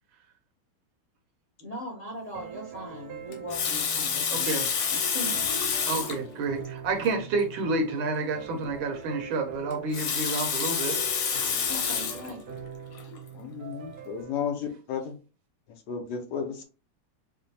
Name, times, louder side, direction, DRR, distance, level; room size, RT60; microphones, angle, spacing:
voice 1, 1.6-5.4 11.7-12.4, equal, 30° left, 0.7 m, -39 dB
sound 1, 2.3-14.3, right 5 dB, 90° right, 1.6 m, -43 dB
Water tap faucet, 3.3-6.2 7.0-7.1 7.4-7.5 9.7-12.3 13.0-13.2, left 7 dB, 85° left, 1.7 m, -28 dB
voice 2, 4.3-4.7 5.9-11.0, right 3 dB, 75° right, 1.4 m, -29 dB
voice 3, 13.3-15.2 15.9-16.6, left 7 dB, 70° left, 1.0 m, -33 dB
5.0 x 2.2 x 2.7 m
omnidirectional pair, 2.3 m